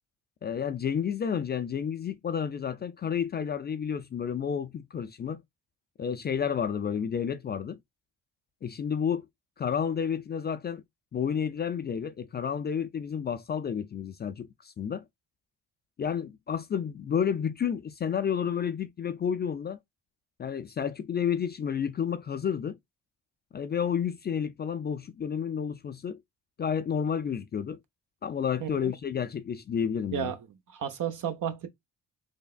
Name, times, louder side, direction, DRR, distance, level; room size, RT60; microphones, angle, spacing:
voice 1, 0.4-5.4 6.0-7.8 8.6-9.2 9.6-10.8 11.1-15.0 16.0-19.8 20.4-22.8 23.5-26.2 26.6-27.8 28.2-30.3, left 7 dB, 30° left, 0.4 m, -30 dB
voice 2, 28.6-28.9 30.1-30.4 30.7-31.7, right 9 dB, 60° right, 0.8 m, -32 dB
3.3 x 2.0 x 2.4 m
supercardioid pair, 55°, 36 cm